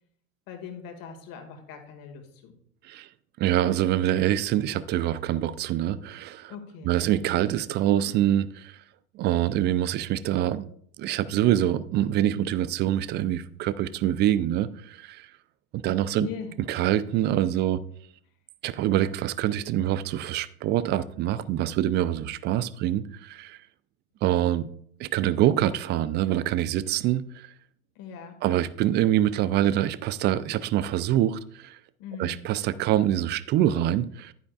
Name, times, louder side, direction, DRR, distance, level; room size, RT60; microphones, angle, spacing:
voice 1, 0.5-2.5 6.5-6.9 16.2-16.5 28.0-28.4 32.0-32.4, left 7 dB, 50° left, 2.0 m, -40 dB
voice 2, 3.4-6.5 6.8-8.8 9.1-10.6 11.0-15.3 15.7-16.3 16.6-17.8 18.6-23.6 24.2-24.7 25.0-27.5 28.4-31.8 32.2-34.3, right 12 dB, 25° right, 0.3 m, -25 dB
10.5 x 9.5 x 2.4 m
hypercardioid pair, 80°, 44 cm